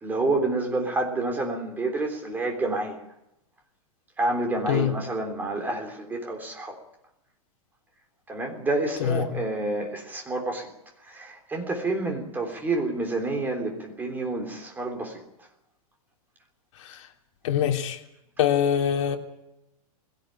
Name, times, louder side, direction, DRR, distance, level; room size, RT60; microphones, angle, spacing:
voice 1, 0.0-3.0 4.2-6.8 8.3-10.7 11.0-15.2, right 2 dB, 10° right, 3 dB, 3.4 m, -28 dB
voice 2, 17.4-18.0 18.4-19.2, left 9 dB, 50° left, 2 dB, 3.4 m, -23 dB
21.0 x 17.0 x 9.1 m, 0.86 s
supercardioid pair, 165°, 19 cm